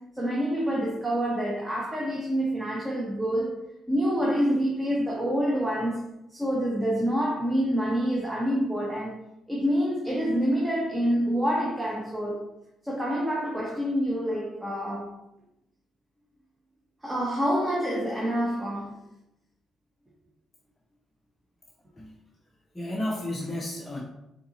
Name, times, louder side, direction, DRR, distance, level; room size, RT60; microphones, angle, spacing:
voice 1, 0.1-3.5 3.9-6.0 6.3-9.2 9.5-12.5 12.8-15.1 17.0-19.0, equal, 10° right, -4 dB, 1.0 m, -27 dB
voice 2, 22.7-24.0, left 1 dB, 15° left, -3 dB, 0.7 m, -32 dB
4.3 x 3.9 x 2.9 m, 0.88 s
cardioid pair, 90°, 0 cm